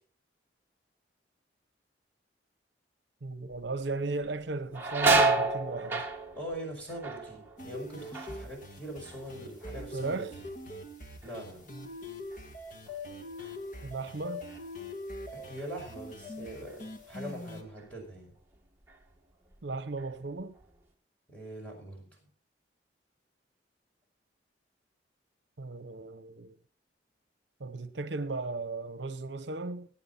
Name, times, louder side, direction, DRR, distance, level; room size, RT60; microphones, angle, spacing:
voice 1, 3.2-6.1 9.9-10.3 13.8-14.4 19.6-20.5 25.6-26.6 27.6-29.9, right 3 dB, 70° right, 0.8 m, -36 dB
sound 1, 3.5-3.9 4.2-9.8 10.1-10.7 11.2-14.2 14.5-14.6 15.6-15.8 16.2-17.3 17.8-17.9 18.5-19.2 19.5-20.7, right 3 dB, 10° right, 1.5 m, -32 dB
voice 2, 6.4-10.3 11.2-11.7 15.3-18.3 21.3-22.2, right 1 dB, 5° left, 5.6 m, -42 dB
sound 2, 7.6-17.6, left 1 dB, 45° left, 1.7 m, -43 dB
18.0 x 8.8 x 4.1 m
head